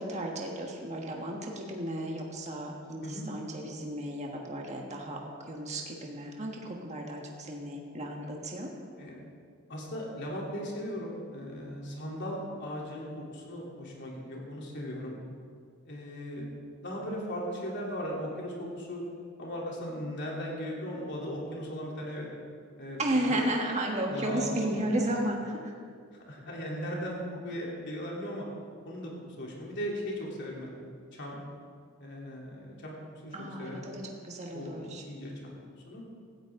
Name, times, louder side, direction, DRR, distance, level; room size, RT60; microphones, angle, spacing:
voice 1, 0.0-5.2 5.5-8.7 23.0-25.7 33.3-35.0, right 1 dB, 35° right, 0 dB, 1.5 m, -33 dB
voice 2, 9.7-15.2 15.9-16.5 16.8-19.0 19.4-22.3 22.8-23.0 23.3-23.4 24.1-24.8 26.3-28.5 28.9-29.1 29.4-30.7 31.1-31.4 32.0-33.0 33.2-33.9 34.5-35.5 35.9-36.0, equal, 55° left, -3 dB, 3.4 m, -37 dB
17.5 x 13.5 x 3.8 m, 2.2 s
head